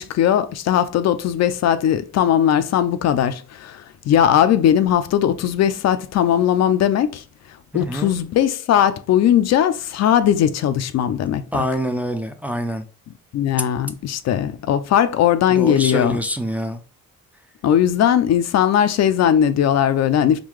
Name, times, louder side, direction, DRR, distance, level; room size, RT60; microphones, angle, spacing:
voice 1, 0.0-7.2 7.7-11.6 13.3-16.2 17.6-20.4, left 10 dB, 60° left, 0.4 m, -18 dB
voice 2, 7.7-8.1 11.5-12.8 15.5-16.8, equal, 5° right, 0.4 m, -25 dB
3.7 x 2.3 x 3.1 m
cardioid pair, 90°, 30 cm